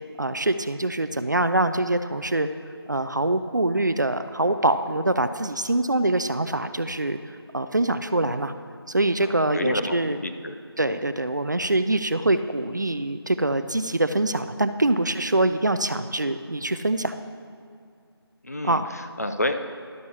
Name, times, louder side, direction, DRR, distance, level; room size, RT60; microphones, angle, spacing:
voice 1, 0.2-2.5 2.9-8.5 8.9-10.2 10.8-17.1 18.6-18.9, right 2 dB, 45° right, 10 dB, 0.4 m, -24 dB
voice 2, 9.2-10.5 18.4-19.5, left 1 dB, 40° left, 7 dB, 0.5 m, -29 dB
12.5 x 9.4 x 2.8 m, 2.3 s
figure-of-eight pair, 170°, 14 cm